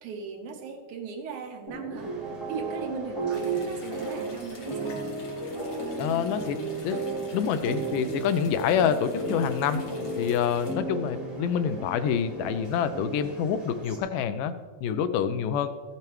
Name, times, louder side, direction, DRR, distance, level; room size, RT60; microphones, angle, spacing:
voice 1, 0.0-2.1 2.5-5.0, right 6 dB, 70° right, 3 dB, 2.1 m, -38 dB
sound 1, 1.7-13.4, right 2 dB, 30° left, 3.3 m, -34 dB
sound 2, 1.9-14.0, right 1 dB, 50° right, 0.4 m, -48 dB
sound 3, 3.3-10.7, left 3 dB, 50° left, 2.3 m, -50 dB
voice 2, 6.0-7.0 7.3-9.8 10.2-14.5 14.8-15.7, left 7 dB, 80° left, 10 dB, 2.1 m, -27 dB
15.5 x 8.7 x 3.1 m, 1.5 s
omnidirectional pair, 3.9 m